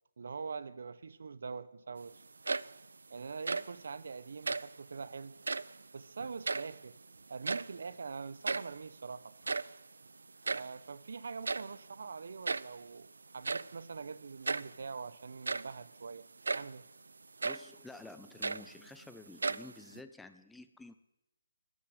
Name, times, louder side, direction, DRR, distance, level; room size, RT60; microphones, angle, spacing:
voice 1, 0.2-2.2 3.1-5.4 5.9-7.0 7.3-9.3 10.5-16.3 16.5-16.9, right 5 dB, 60° right, 17 dB, 0.9 m, -44 dB
sound 1, 2.3-2.9 3.3-3.8 4.4-4.8 5.3-5.8 6.2-7.0 7.3-7.9 8.2-8.3 8.4-8.8 9.3-10.8 11.4-11.8 12.4-12.8 13.4-13.8 14.4-14.8 15.3-15.8 16.4-16.8 17.4-17.7 18.2-19.0 19.4-20.0, right 4 dB, 85° right, 0.5 m, -36 dB
voice 2, 17.4-20.9, left 2 dB, 5° left, 10 dB, 0.5 m, -51 dB
13.5 x 10.0 x 7.9 m, 0.89 s
hypercardioid pair, 165°, 0 cm